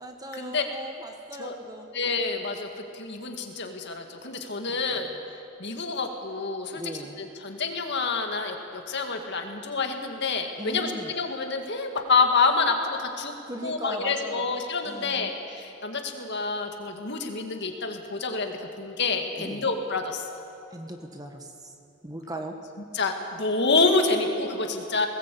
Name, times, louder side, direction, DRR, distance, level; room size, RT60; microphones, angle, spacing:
voice 1, 0.0-1.9 4.7-5.2 6.7-7.2 10.6-11.1 13.4-14.5 14.8-15.3 19.4-19.6 20.7-21.7 22.0-22.6, right 1 dB, 15° right, 4 dB, 1.4 m, -39 dB
voice 2, 1.9-5.1 5.6-6.8 7.2-13.3 13.6-20.3 22.9-25.1, left 4 dB, 55° left, 4 dB, 2.0 m, -27 dB
21.0 x 18.5 x 8.5 m, 2.7 s
head